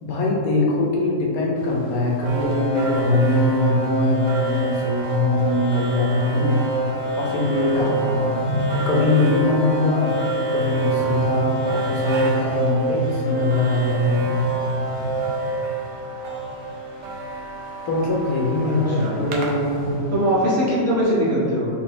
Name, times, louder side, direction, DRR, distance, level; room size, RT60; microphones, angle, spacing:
voice 1, 0.0-6.6 7.2-8.3 8.7-10.2 10.5-14.3 17.8-20.0, left 2 dB, 70° left, -2 dB, 1.2 m, -21 dB
sound 1, 1.5-20.3, right 1 dB, 25° left, 0.6 m, -36 dB
sound 2, 2.2-20.2, right 2 dB, 60° right, 0.8 m, -27 dB
voice 2, 18.6-19.1 20.1-21.7, equal, 10° right, -10 dB, 1.0 m, -21 dB
4.3 x 3.5 x 3.1 m, 2.5 s
omnidirectional pair, 1.6 m